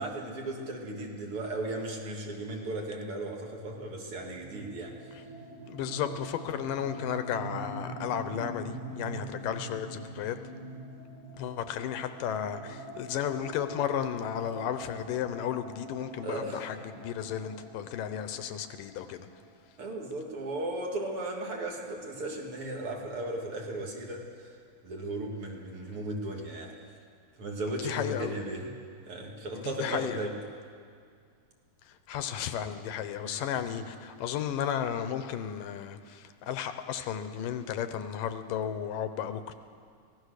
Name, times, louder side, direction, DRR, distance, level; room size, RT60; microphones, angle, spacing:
voice 1, 0.0-5.0 16.2-16.6 19.8-24.2 24.8-26.8 27.4-28.7 29.1-30.3 33.3-33.4, right 2 dB, 45° right, 0 dB, 3.1 m, -36 dB
sound 1, 4.0-19.6, right 2 dB, 70° right, 4.1 m, -44 dB
voice 2, 5.7-10.4 11.4-19.3 27.7-28.3 29.5-30.2 32.1-39.5, left 9 dB, 80° left, 9 dB, 2.5 m, -34 dB
24.0 x 18.0 x 6.6 m, 2.2 s
omnidirectional pair, 3.9 m